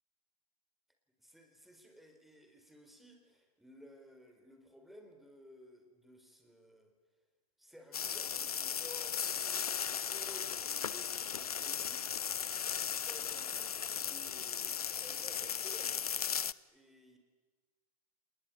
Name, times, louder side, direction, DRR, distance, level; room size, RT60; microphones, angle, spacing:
voice 1, 1.2-6.9 7.6-12.3 12.7-16.0 16.7-17.2, equal, ahead, 4 dB, 4.2 m, -56 dB
sound 1, 7.9-16.5, left 8 dB, 70° left, 0.9 m, -37 dB
30.0 x 20.0 x 9.3 m, 1.4 s
figure-of-eight pair, 115°, 19 cm